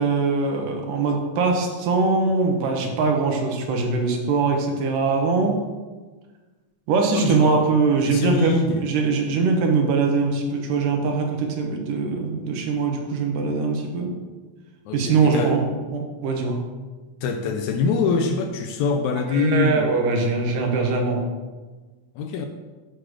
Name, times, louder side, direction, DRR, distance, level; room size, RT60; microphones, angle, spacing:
voice 1, 0.0-5.5 6.9-14.1 14.9-16.6 19.1-21.2, right 4 dB, 90° right, 2 dB, 2.8 m, -22 dB
voice 2, 7.1-7.7 8.0-8.9 14.9-15.6 17.2-20.0 22.2-22.5, left 5 dB, 80° left, 6 dB, 1.8 m, -24 dB
7.7 x 4.9 x 6.4 m, 1.3 s
omnidirectional pair, 3.7 m